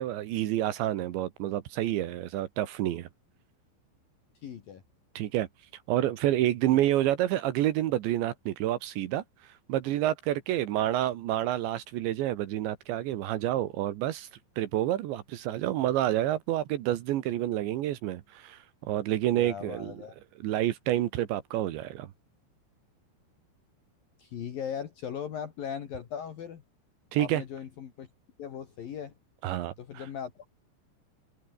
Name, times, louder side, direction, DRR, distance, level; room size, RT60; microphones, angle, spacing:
voice 1, 0.0-3.1 5.2-5.5 5.9-9.2 9.7-14.3 14.6-20.0 20.4-22.1 27.1-27.4 29.4-30.1, right 13 dB, 75° right, 3.6 m, -28 dB
voice 2, 4.4-4.8 6.7-6.8 19.4-20.2 24.2-26.6 27.2-28.1 28.4-29.1 29.8-30.5, left 8 dB, 55° left, 3.5 m, -38 dB
omnidirectional pair, 5.3 m